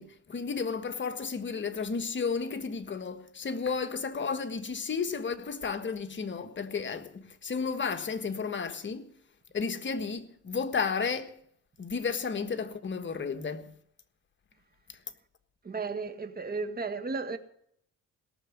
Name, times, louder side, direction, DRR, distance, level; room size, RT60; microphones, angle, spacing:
voice 1, 0.0-9.1 9.5-11.3 11.8-13.7, left 5 dB, 40° left, 1.5 m, -33 dB
voice 2, 15.6-17.4, right 4 dB, 30° right, 1.8 m, -34 dB
18.0 x 7.0 x 9.7 m
cardioid pair, 90°, 30 cm